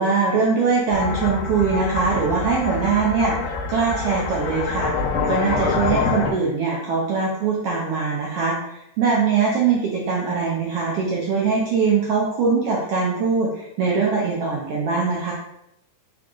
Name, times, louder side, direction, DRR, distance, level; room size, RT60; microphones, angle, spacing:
voice 1, 0.0-4.9 5.3-15.3, right 5 dB, 80° right, -3 dB, 1.3 m, -22 dB
sound 1, 0.9-6.3, left 4 dB, 90° left, 2.1 m, -26 dB
5.1 x 3.7 x 2.4 m, 0.81 s
omnidirectional pair, 3.4 m